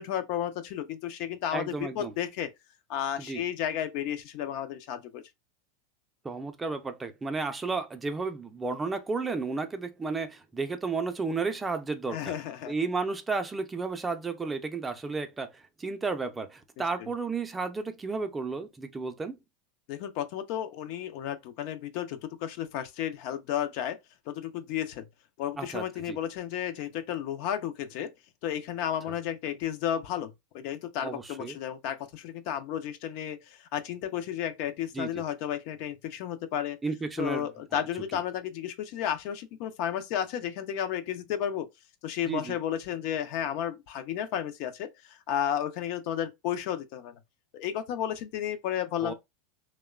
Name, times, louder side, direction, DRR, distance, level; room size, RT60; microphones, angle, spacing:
voice 1, 0.0-2.5 2.9-5.2 12.1-12.7 17.0-17.1 19.9-24.0 24.3-25.1 25.4-28.1 28.4-36.8 37.2-41.7 42.0-47.2 47.5-49.1, left 10 dB, 60° left, 0.4 m, -33 dB
voice 2, 1.5-2.1 3.3-3.4 6.2-12.4 12.7-19.4 25.6-26.2 31.0-31.6 34.9-35.2 36.8-37.5 42.3-42.6 49.0-49.1, right 4 dB, 15° right, 0.4 m, -33 dB
2.9 x 2.0 x 2.2 m
hypercardioid pair, 105°, 0 cm